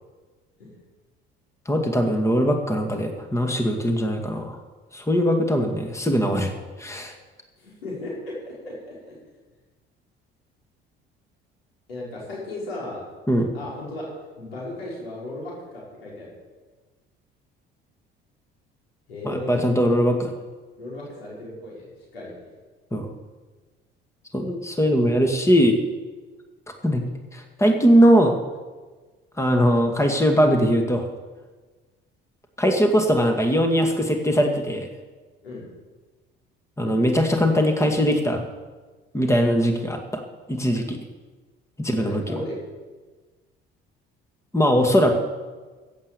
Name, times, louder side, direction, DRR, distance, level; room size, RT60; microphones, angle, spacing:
voice 1, 1.7-4.6 4.9-6.5 6.8-7.1 13.3-13.5 19.2-20.3 22.9-23.1 24.3-25.8 26.8-27.0 27.3-28.4 29.4-31.1 32.6-34.9 36.8-38.4 39.1-40.2 40.5-41.0 41.8-42.4 44.5-45.2, equal, 10° left, 4 dB, 2.1 m, -20 dB
voice 2, 7.6-9.2 11.9-13.0 13.5-14.1 14.4-16.3 19.1-19.9 20.8-22.5 35.4-35.6 41.8-42.6 44.8-45.2, left 1 dB, 90° left, -5 dB, 5.3 m, -36 dB
15.5 x 8.2 x 6.9 m, 1.3 s
hypercardioid pair, 55°, 29 cm